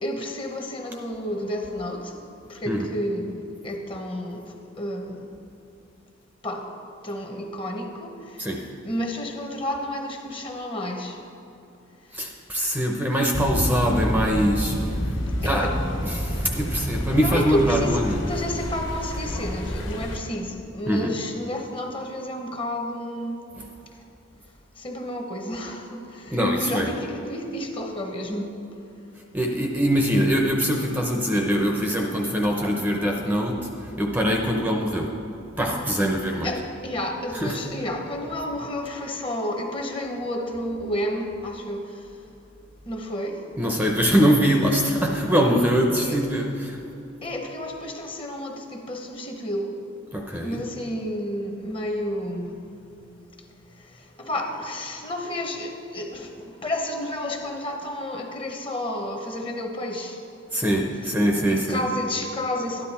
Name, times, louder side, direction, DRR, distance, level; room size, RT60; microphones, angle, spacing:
voice 1, 0.0-2.1 2.5-5.3 6.4-6.7 7.0-8.4 8.8-11.2 15.4-15.7 17.1-18.0 18.3-23.4 24.8-28.6 36.4-41.9 42.9-43.4 46.0-46.2 47.2-49.8 50.4-52.6 54.2-60.2 60.5-60.6 61.0-61.1 61.5-62.8, left 1 dB, 25° left, 3 dB, 1.1 m, -31 dB
voice 2, 12.1-15.7 16.0-18.4 20.9-21.1 23.5-23.7 26.3-27.0 29.3-35.2 35.5-36.6 37.3-37.6 43.6-46.8 50.1-50.6 60.5-61.9, equal, 10° right, 1 dB, 0.7 m, -23 dB
sound 1, 13.3-20.2, equal, 65° left, 1.8 m, -28 dB
12.5 x 10.5 x 4.3 m, 2.9 s
head